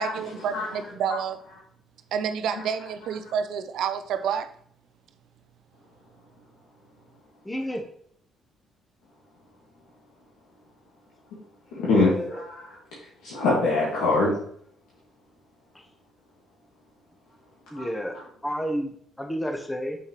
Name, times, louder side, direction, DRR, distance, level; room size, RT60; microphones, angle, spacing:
voice 1, 0.0-1.4 2.1-4.5, right 7 dB, 75° right, 10 dB, 0.5 m, -29 dB
voice 2, 7.4-7.9 11.9-12.4 17.7-18.2 18.4-20.0, equal, 10° left, 4 dB, 1.3 m, -30 dB
voice 3, 11.8-12.5 13.2-14.3 17.7-17.9, left 2 dB, 85° left, -6 dB, 1.9 m, -23 dB
6.9 x 5.5 x 3.1 m, 0.63 s
supercardioid pair, 65°, 0 cm